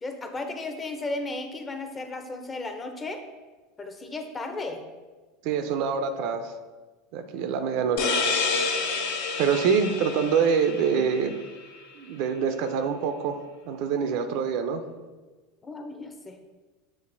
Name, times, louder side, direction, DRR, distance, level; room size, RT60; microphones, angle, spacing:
voice 1, 0.0-3.2 3.8-4.8 15.6-16.4, left 2 dB, 25° left, 5 dB, 0.6 m, -34 dB
voice 2, 5.4-6.6 7.1-8.1 9.4-11.3 11.9-14.8, right 6 dB, 65° right, 8 dB, 0.4 m, -25 dB
sound 1, 8.0-11.4, left 4 dB, 75° left, 0.6 m, -28 dB
7.0 x 2.5 x 2.6 m, 1.3 s
hypercardioid pair, 95°, 0 cm